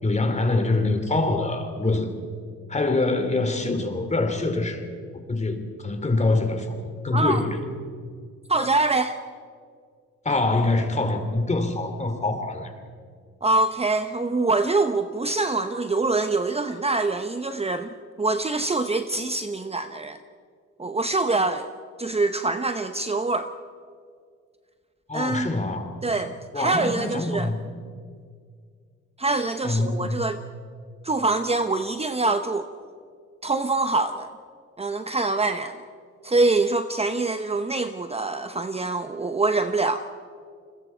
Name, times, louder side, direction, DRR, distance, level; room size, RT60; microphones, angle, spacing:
voice 1, 0.0-2.2 2.7-4.9 5.3-7.6 10.2-12.7 25.1-26.0 26.5-27.6 29.6-30.2, left 2 dB, 25° left, 6 dB, 3.0 m, -25 dB
voice 2, 8.5-9.2 13.4-17.9 18.2-20.2 20.8-21.7 22.0-23.5 25.1-25.5 26.0-27.5 29.2-30.4 31.0-32.7 33.4-34.3 34.8-35.8 36.2-40.0, right 3 dB, 20° right, 8 dB, 0.9 m, -24 dB
29.5 x 21.5 x 4.5 m, 2.1 s
cardioid pair, 90°, 30 cm